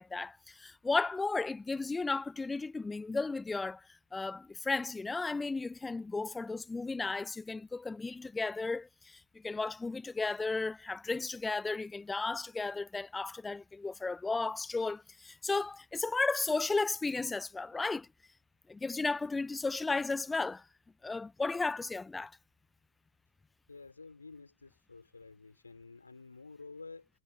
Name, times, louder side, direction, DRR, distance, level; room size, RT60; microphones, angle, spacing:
voice 1, 0.0-3.9 4.1-18.1 18.7-20.6 21.0-22.3, left 3 dB, 10° left, 0.7 m, -34 dB
voice 2, 23.7-27.1, left 4 dB, 80° left, 4.5 m, -50 dB
figure-of-eight pair, 90°, 0 cm